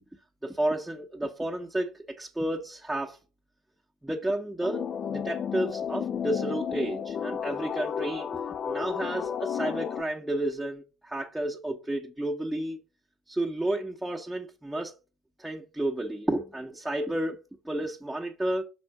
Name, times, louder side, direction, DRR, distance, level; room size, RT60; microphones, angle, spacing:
voice 1, 0.4-3.2 4.0-8.3 8.6-12.8 13.3-14.9 15.4-18.6, right 1 dB, 5° right, 0.9 m, -31 dB
sound 1, 4.6-10.0, left 8 dB, 40° left, 0.5 m, -32 dB
6.0 x 4.3 x 4.7 m
figure-of-eight pair, 60°, 0 cm